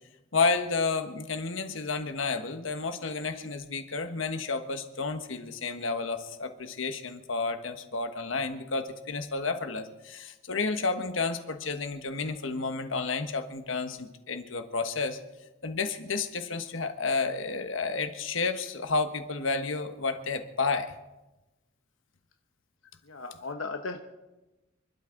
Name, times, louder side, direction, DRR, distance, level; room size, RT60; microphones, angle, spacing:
voice 1, 0.3-15.2 15.6-20.9, left 4 dB, 70° left, 8 dB, 1.4 m, -31 dB
voice 2, 23.0-24.0, left 3 dB, 90° left, 5 dB, 1.0 m, -36 dB
28.0 x 12.5 x 3.9 m, 1.1 s
head